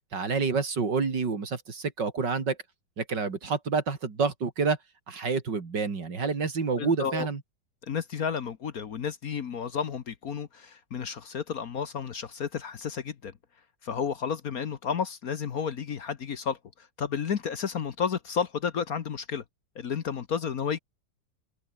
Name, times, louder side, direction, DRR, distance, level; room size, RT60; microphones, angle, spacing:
voice 1, 0.1-2.6 3.0-4.8 5.1-7.4, right 4 dB, 65° right, 3.5 m, -28 dB
voice 2, 6.8-7.3 7.8-13.3 13.8-19.4 19.7-20.8, left 7 dB, 50° left, 1.5 m, -32 dB
omnidirectional pair, 2.1 m